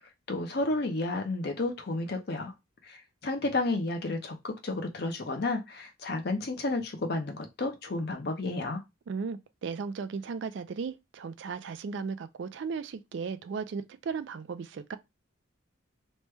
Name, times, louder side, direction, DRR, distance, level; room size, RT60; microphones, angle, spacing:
voice 1, 0.3-2.5 2.9-8.8, left 2 dB, 50° left, 0.6 m, -31 dB
voice 2, 9.1-15.0, right 5 dB, 60° right, 0.3 m, -36 dB
3.1 x 2.1 x 3.2 m
head